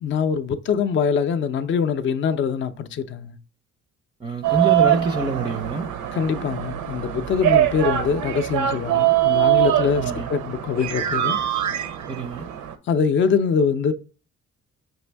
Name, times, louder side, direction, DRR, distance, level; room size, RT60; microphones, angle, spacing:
voice 1, 0.0-3.4 6.2-11.4 12.9-13.9, left 6 dB, 40° left, 0.4 m, -23 dB
voice 2, 4.2-5.9 9.9-10.3 12.1-12.5, right 3 dB, 15° right, 0.4 m, -26 dB
sound 1, 4.4-12.8, right 13 dB, 75° right, 0.5 m, -23 dB
6.0 x 2.6 x 3.3 m
cardioid pair, 90°, 30 cm